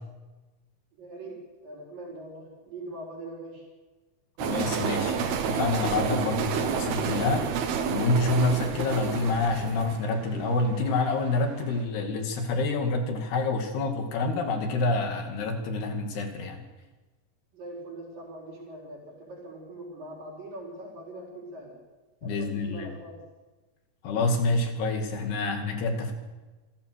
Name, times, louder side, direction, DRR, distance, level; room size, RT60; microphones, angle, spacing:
voice 1, 0.9-3.6 17.5-21.8 22.2-23.2, right 1 dB, 60° right, -1 dB, 5.5 m, -42 dB
voice 2, 4.4-7.5 7.9-16.6 22.2-22.9 24.0-26.1, left 3 dB, 90° left, 4 dB, 4.6 m, -27 dB
sound 1, 4.4-11.4, right 6 dB, 80° right, 3.4 m, -29 dB
27.0 x 14.5 x 6.6 m, 1.2 s
omnidirectional pair, 4.5 m